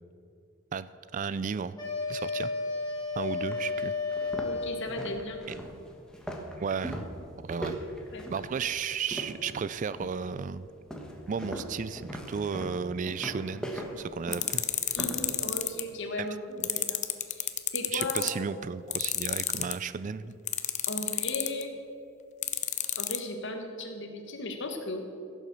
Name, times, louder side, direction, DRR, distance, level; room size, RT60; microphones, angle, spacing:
voice 1, 0.7-1.8 2.1-2.5 3.2-3.9 5.5-5.6 6.6-7.1 7.4-7.8 8.3-10.7 11.3-14.6 16.2-16.3 16.6-16.8 17.9-20.3, right 6 dB, 35° right, 15 dB, 0.3 m, -34 dB
sound 1, 1.8-5.3, left 4 dB, 20° left, 3.6 m, -33 dB
sound 2, 2.9-3.0 3.5-3.6 4.1-9.6 9.9-10.3 10.9-15.3, equal, 5° left, 1.2 m, -39 dB
voice 2, 4.4-5.4 8.1-8.2 14.9-17.0 17.3-17.5 17.7-18.5 20.9-21.7 23.0-25.0, left 1 dB, 60° left, 4 dB, 1.5 m, -36 dB
sound 3, 14.3-15.8 16.6-18.3 18.9-19.7 20.5-21.6 22.4-23.2, left 12 dB, 35° left, 0.7 m, -28 dB
16.0 x 7.3 x 6.8 m, 2.5 s
head